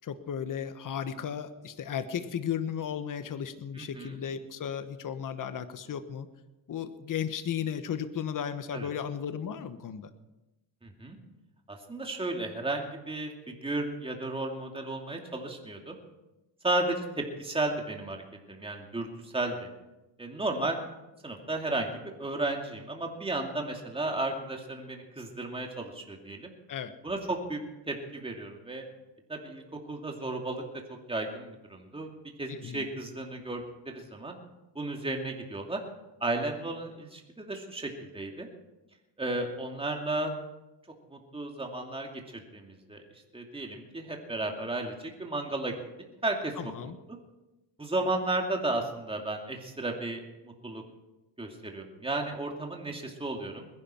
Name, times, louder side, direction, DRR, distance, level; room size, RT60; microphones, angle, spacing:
voice 1, 0.0-6.3 6.7-10.1 26.7-27.0 32.5-32.8 46.6-47.0, left 8 dB, 40° left, 11 dB, 1.3 m, -35 dB
voice 2, 3.8-4.2 8.7-8.9 10.8-11.2 11.7-16.0 16.6-18.2 18.5-19.7 20.2-20.8 21.2-26.5 27.0-27.6 27.9-28.9 29.3-30.6 31.1-32.1 32.4-34.4 34.7-35.8 36.2-38.5 39.2-40.3 41.1-43.0 43.3-45.7 46.2-46.5 46.8-46.9 47.8-50.8 51.4-53.7, right 2 dB, 10° right, 2 dB, 2.6 m, -34 dB
20.5 x 11.0 x 4.5 m, 0.98 s
cardioid pair, 95°, 47 cm